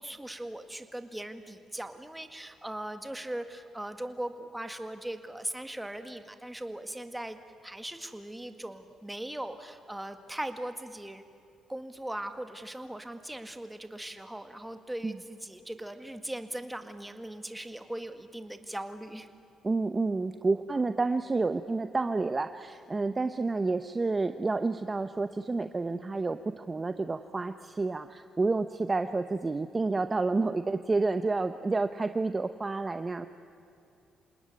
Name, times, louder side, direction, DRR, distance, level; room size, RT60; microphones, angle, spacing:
voice 1, 0.0-11.2 11.7-19.3, right 1 dB, 5° right, 8 dB, 1.9 m, -39 dB
voice 2, 19.6-33.3, right 3 dB, 25° right, 10 dB, 0.8 m, -29 dB
27.5 x 19.5 x 9.5 m, 2.6 s
cardioid pair, 90°, 0 cm